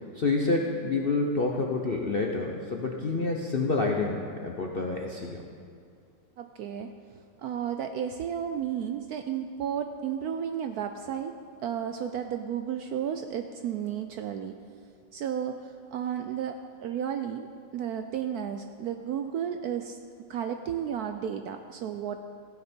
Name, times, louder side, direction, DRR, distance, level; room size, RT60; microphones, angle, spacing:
voice 1, 0.1-5.4, left 3 dB, 50° left, 0 dB, 0.7 m, -28 dB
voice 2, 6.4-6.9 7.4-11.3 11.6-14.5 15.1-15.6 15.9-17.5 17.7-20.0 20.3-22.2, right 9 dB, 70° right, 7 dB, 0.9 m, -33 dB
15.0 x 10.0 x 4.4 m, 2.4 s
omnidirectional pair, 2.0 m